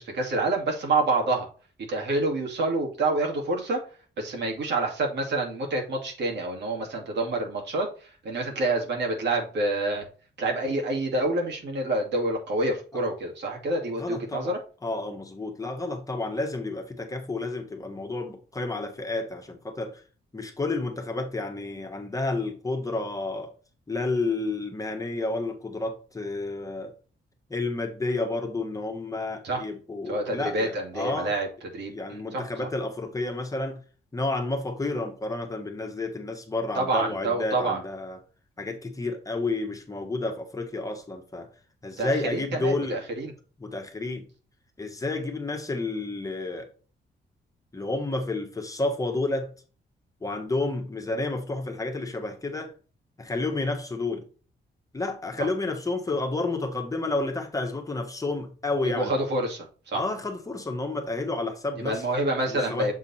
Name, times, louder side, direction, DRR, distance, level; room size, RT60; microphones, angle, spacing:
voice 1, 0.0-1.5 1.9-3.8 4.2-10.0 10.4-14.6 29.4-29.6 30.1-32.4 36.8-37.8 42.0-43.3 55.4-55.5 58.8-60.0 61.8-63.0, right 2 dB, 75° right, 2.5 m, -27 dB
voice 2, 14.0-14.5 14.8-20.0 20.3-23.5 23.9-26.9 27.5-31.3 31.9-33.8 34.1-38.2 38.6-41.5 41.8-43.0 43.6-44.3 44.8-46.7 47.7-49.5 50.2-52.7 53.2-54.3 54.9-59.1 59.9-62.0 62.5-62.9, left 2 dB, 20° left, 1.4 m, -30 dB
7.3 x 3.6 x 4.3 m
cardioid pair, 125°, 18 cm